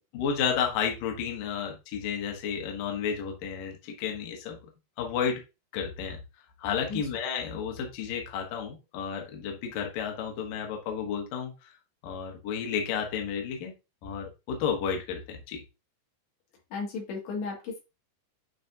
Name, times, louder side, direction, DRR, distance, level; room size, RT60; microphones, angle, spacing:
voice 1, 0.1-4.6 5.0-5.4 5.7-6.2 6.6-11.7 12.0-13.7 14.0-15.6, left 7 dB, 65° left, 2 dB, 2.4 m, -32 dB
voice 2, 16.7-17.8, left 4 dB, 85° left, -2 dB, 4.4 m, -34 dB
9.1 x 4.1 x 2.7 m, 0.28 s
omnidirectional pair, 4.9 m